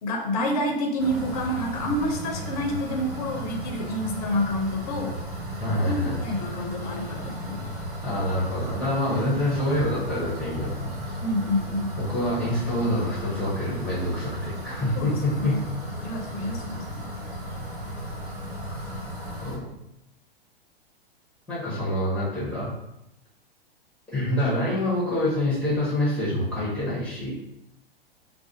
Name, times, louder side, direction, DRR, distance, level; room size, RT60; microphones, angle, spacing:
voice 1, 0.0-5.2 5.7-7.7 11.2-12.0 14.8-15.6 16.0-17.0 18.7-19.0, equal, 40° left, 3 dB, 0.5 m, -29 dB
sound 1, 1.0-19.6, equal, 80° right, 1.2 m, -35 dB
voice 2, 5.6-6.2 8.0-11.2 12.1-15.6 19.4-19.7 21.5-22.7 24.1-27.3, left 1 dB, 5° left, -10 dB, 0.7 m, -26 dB
2.4 x 2.2 x 2.7 m, 0.85 s
figure-of-eight pair, 105°, 30 cm